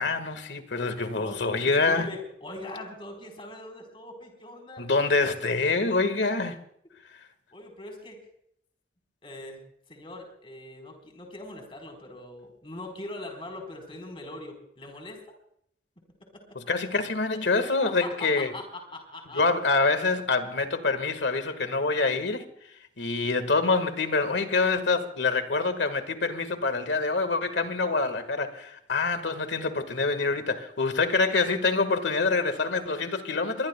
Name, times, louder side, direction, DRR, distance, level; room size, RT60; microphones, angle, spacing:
voice 1, 0.0-2.1 4.8-6.6 16.5-18.5 19.3-22.4 23.0-33.7, left 3 dB, 90° left, 1.7 m, -26 dB
voice 2, 1.1-4.8 7.5-8.2 9.2-9.6 9.9-15.2 16.3-16.4 17.5-18.7 18.9-19.4, left 2 dB, 30° left, 4.2 m, -41 dB
24.0 x 21.5 x 2.3 m
head